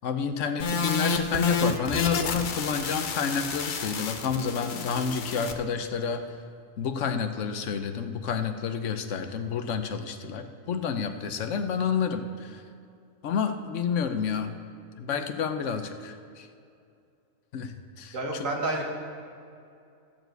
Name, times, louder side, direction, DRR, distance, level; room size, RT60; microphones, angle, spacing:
voice 1, 0.0-6.3 6.8-12.6 13.2-14.5 15.0-16.5 17.5-18.5, left 6 dB, 70° left, 8 dB, 1.0 m, -29 dB
sound 1, 0.6-5.5, left 4 dB, 50° left, 0.6 m, -30 dB
voice 2, 18.1-18.9, right 2 dB, 75° right, 0 dB, 2.0 m, -29 dB
14.0 x 4.7 x 7.8 m, 2.5 s
omnidirectional pair, 1.4 m